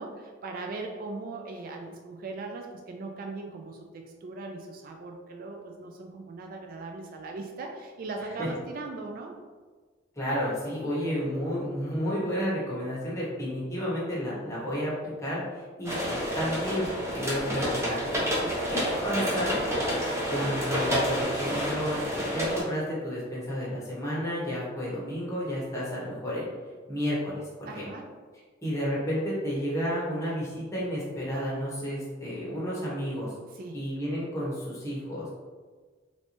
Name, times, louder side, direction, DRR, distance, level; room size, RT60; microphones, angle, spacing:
voice 1, 0.0-9.3 18.4-18.6 27.7-28.1 33.5-33.8, right 3 dB, 50° right, 3 dB, 0.3 m, -39 dB
voice 2, 10.2-14.9 15.2-16.0 16.4-16.9 17.1-18.2 18.7-19.5 20.3-26.5 26.9-27.9 28.6-33.3 33.7-35.3, equal, 15° left, -7 dB, 0.9 m, -31 dB
sound 1, 15.8-22.6, equal, 15° right, 0.6 m, -29 dB
3.2 x 2.7 x 2.9 m, 1.4 s
head